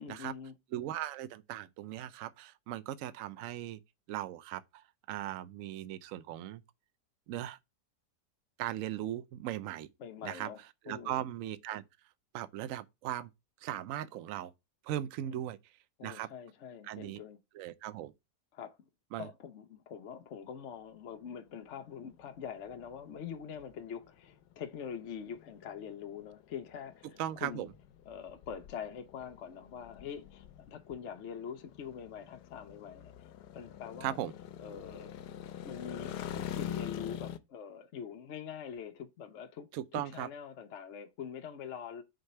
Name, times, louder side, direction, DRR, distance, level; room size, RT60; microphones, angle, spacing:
voice 1, 0.0-0.5 10.0-11.3 15.2-15.4 16.0-17.4 18.5-18.9 19.1-27.7 28.1-33.3 33.5-34.2 34.6-35.1 35.6-39.7 39.9-42.0, left 7 dB, 50° left, 1.0 m, -44 dB
voice 2, 0.7-3.8 4.1-4.8 5.1-6.6 7.3-7.6 8.6-9.9 10.2-10.5 10.9-11.8 12.3-13.3 13.6-14.5 14.8-15.6 16.0-16.3 16.9-17.2 17.5-18.1 19.1-19.3 27.2-27.7 34.0-34.3 39.7-40.3, right 12 dB, 65° right, 0.8 m, -38 dB
sound 1, 21.3-37.4, left 10 dB, 80° left, 1.2 m, -45 dB
5.2 x 3.9 x 5.5 m
omnidirectional pair, 1.8 m